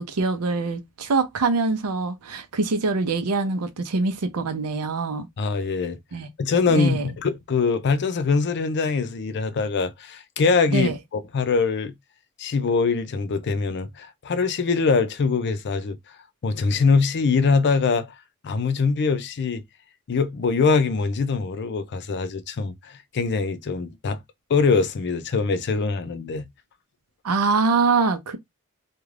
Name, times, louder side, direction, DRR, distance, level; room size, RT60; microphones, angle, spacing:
voice 1, 0.0-5.3 6.1-6.3 6.7-7.1 10.7-10.9 27.2-28.4, right 4 dB, 90° right, 0.6 m, -24 dB
voice 2, 5.4-6.0 6.4-11.9 12.4-16.2 16.4-18.2 18.4-19.6 20.1-24.2 24.5-26.5, left 4 dB, 50° left, 0.4 m, -23 dB
2.4 x 2.2 x 3.2 m
head